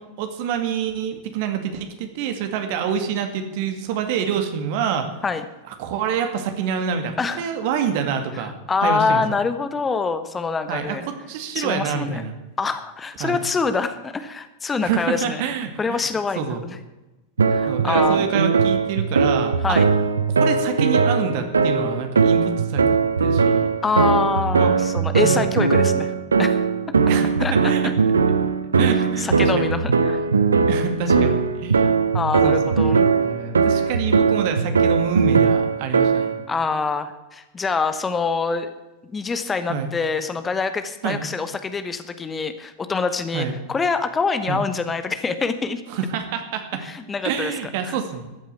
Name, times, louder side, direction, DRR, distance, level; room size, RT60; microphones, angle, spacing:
voice 1, 0.0-5.1 5.7-9.2 10.7-12.4 13.2-13.5 14.8-16.1 16.4-16.6 17.7-19.8 20.4-22.9 23.2-23.7 24.6-24.7 25.1-25.5 27.1-27.9 28.8-29.6 30.7-31.9 32.4-36.4 39.7-39.9 41.0-41.2 43.3-43.6 44.5-44.6 45.9-46.8 47.2-48.3, right 7 dB, 50° right, 7 dB, 2.0 m, -27 dB
voice 2, 7.2-7.5 8.7-11.1 11.5-12.2 12.6-15.4 15.8-16.8 17.5-18.3 19.6-19.9 23.8-26.1 26.4-26.6 27.4-27.7 28.9-30.2 31.1-31.3 32.1-33.1 36.5-38.7 39.1-45.8 46.8-47.5 47.8-48.0, left 4 dB, 15° left, 10 dB, 1.0 m, -25 dB
sound 1, 17.4-36.5, right 5 dB, 75° right, 1.0 m, -19 dB
14.0 x 9.2 x 8.4 m, 1.1 s
figure-of-eight pair, 90°, 0 cm